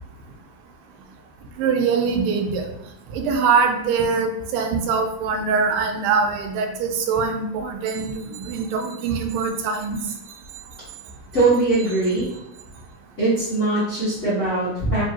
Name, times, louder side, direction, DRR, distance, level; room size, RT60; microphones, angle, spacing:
voice 1, 1.6-2.7 3.1-10.0, right 5 dB, 85° right, 4 dB, 2.3 m, -23 dB
voice 2, 11.3-12.3 13.2-15.0, right 2 dB, 80° left, -10 dB, 0.6 m, -21 dB
5.3 x 2.7 x 2.9 m, 0.80 s
omnidirectional pair, 3.9 m